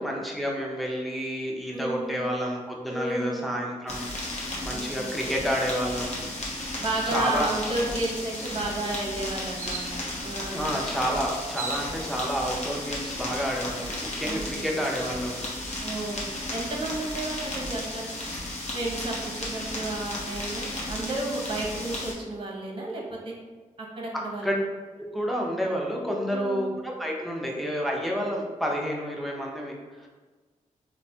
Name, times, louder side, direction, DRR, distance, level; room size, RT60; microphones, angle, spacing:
voice 1, 0.0-6.3 7.1-7.5 10.5-15.4 24.1-24.5 25.1-30.1, equal, ahead, -2 dB, 0.6 m, -30 dB
voice 2, 1.7-2.1 2.9-3.4 4.7-5.2 6.8-10.7 14.2-14.7 15.8-18.1 18.7-23.4 23.8-24.6 26.3-26.7, right 2 dB, 35° right, -2 dB, 0.8 m, -32 dB
sound 1, 3.9-22.1, left 1 dB, 50° left, 0.8 m, -34 dB
sound 2, 6.9-7.1 7.6-7.7 8.0-8.6 9.6-9.9 11.0-11.1 11.4-12.3, right 4 dB, 65° right, 0.4 m, -38 dB
3.1 x 2.1 x 2.7 m, 1.4 s
cardioid pair, 50°, 14 cm